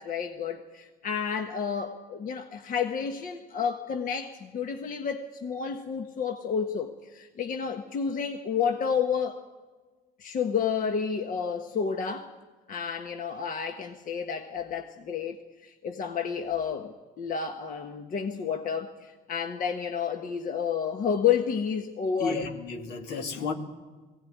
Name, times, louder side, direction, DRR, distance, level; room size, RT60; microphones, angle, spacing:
voice 1, 0.0-9.4 10.2-12.3 12.7-22.4, left 7 dB, 55° left, 5 dB, 1.3 m, -30 dB
voice 2, 22.2-23.5, left 4 dB, 85° left, 3 dB, 2.6 m, -32 dB
20.0 x 17.0 x 9.4 m, 1.3 s
cardioid pair, 110°, 17 cm